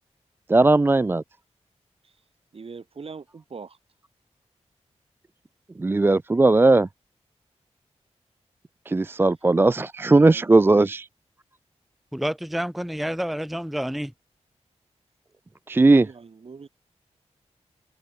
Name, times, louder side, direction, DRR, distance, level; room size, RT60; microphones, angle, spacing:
voice 1, 0.5-1.2 5.8-6.9 8.9-11.0 15.7-16.1, right 2 dB, 20° right, 0.4 m, -18 dB
voice 2, 2.5-3.8 10.2-10.9 16.0-16.7, right 5 dB, 55° right, 5.4 m, -42 dB
voice 3, 12.1-14.1, equal, ahead, 0.7 m, -29 dB
wide cardioid pair, 130°, 12 cm